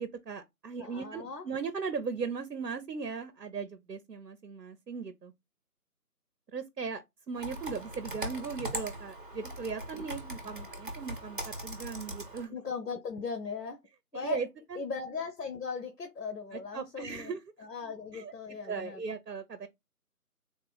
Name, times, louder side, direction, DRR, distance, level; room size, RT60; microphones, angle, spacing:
voice 1, 0.0-5.3 6.5-12.5 14.1-14.8 16.5-17.4 18.1-18.3 18.6-19.7, right 5 dB, 90° right, 0.7 m, -38 dB
voice 2, 0.8-1.4 9.9-10.1 12.5-13.8 14.1-14.4 14.7-17.3 17.6-19.0, left 5 dB, 80° left, 0.9 m, -38 dB
Computer keyboard, 7.3-12.5, right 1 dB, 35° right, 0.7 m, -40 dB
3.7 x 2.0 x 3.8 m
figure-of-eight pair, 165°, 48 cm